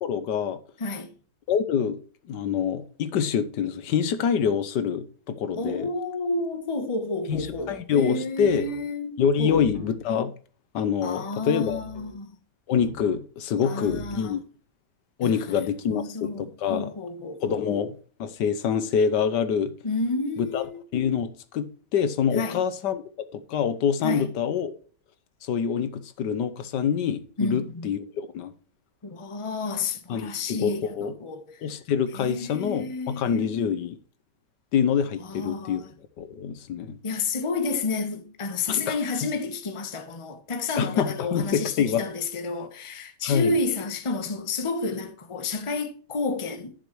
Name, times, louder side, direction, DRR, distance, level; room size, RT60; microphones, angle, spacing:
voice 1, 0.0-0.6 1.5-2.0 2.3-5.9 7.3-8.7 9.2-10.3 10.7-11.8 12.7-14.4 15.2-16.9 17.4-19.7 20.4-20.6 20.9-23.0 23.3-24.7 25.4-28.5 30.1-31.1 31.6-34.0 34.7-35.8 36.2-37.0 38.7-39.0 40.8-42.0 43.2-43.6, left 7 dB, 80° left, 1.5 m, -26 dB
voice 2, 0.8-1.1 5.5-9.7 11.0-12.3 13.6-14.3 15.2-15.4 15.9-17.7 19.8-20.8 22.3-22.6 24.0-24.3 27.4-27.9 29.0-31.6 32.1-33.4 35.2-35.9 37.0-46.7, left 3 dB, 20° left, 0.9 m, -30 dB
sound 1, 7.3-7.8 8.4-8.9 9.5-10.0 11.7-12.2 12.8-13.3 13.9-14.4, equal, 40° left, 2.1 m, -42 dB
11.0 x 6.3 x 3.1 m
omnidirectional pair, 1.9 m